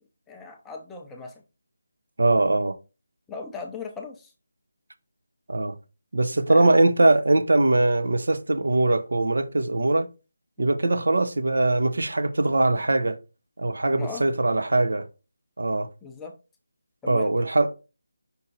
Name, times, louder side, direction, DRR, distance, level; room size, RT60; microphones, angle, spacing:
voice 1, 0.3-1.4 3.3-4.3 6.5-6.6 10.6-10.7 13.9-14.3 16.0-16.3 17.0-17.3, left 4 dB, 5° left, 0.5 m, -38 dB
voice 2, 2.2-2.8 5.5-5.8 6.1-10.1 10.6-13.2 13.6-15.1 15.6-15.9 17.1-17.7, right 2 dB, 75° right, 0.8 m, -21 dB
5.5 x 4.3 x 3.9 m
figure-of-eight pair, 175°, 0 cm